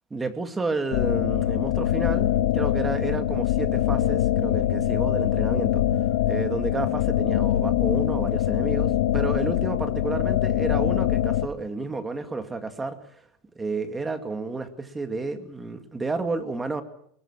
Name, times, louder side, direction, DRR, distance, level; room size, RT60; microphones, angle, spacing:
voice 1, 0.1-5.9 6.3-13.3 13.5-16.8, right 3 dB, 10° right, 8 dB, 2.1 m, -31 dB
sound 1, 0.9-11.5, left 12 dB, 85° left, 1.3 m, -23 dB
24.5 x 21.5 x 7.3 m, 0.68 s
supercardioid pair, 155°, 0 cm